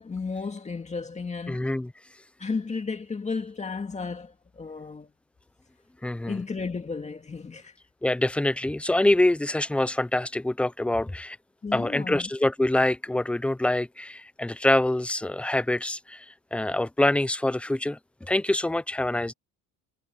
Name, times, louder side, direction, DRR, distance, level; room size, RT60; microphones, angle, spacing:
voice 1, 0.0-1.7 2.4-5.1 6.3-7.7 11.6-12.3, left 4 dB, 20° left, 2.2 m, -33 dB
voice 2, 1.5-1.9 6.0-6.4 8.0-11.4 11.7-16.3 16.5-18.0 18.3-19.3, left 1 dB, 5° left, 0.4 m, -25 dB
cardioid pair, 140°, 36 cm